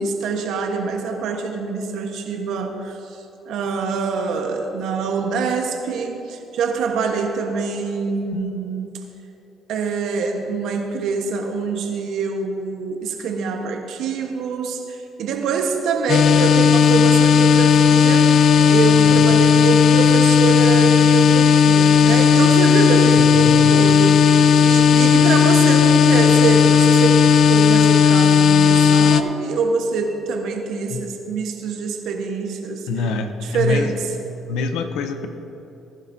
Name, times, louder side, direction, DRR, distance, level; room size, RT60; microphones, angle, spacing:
voice 1, 0.0-9.0 9.7-32.9 33.4-34.1, right 4 dB, 75° right, 4 dB, 1.3 m, -25 dB
sound 1, 16.1-29.2, left 7 dB, 60° left, 0.5 m, -14 dB
voice 2, 23.4-23.7 30.9-31.0 32.9-33.9 34.5-35.3, left 3 dB, 85° left, 8 dB, 0.8 m, -25 dB
19.5 x 11.0 x 2.8 m, 3.0 s
cardioid pair, 85°, 0 cm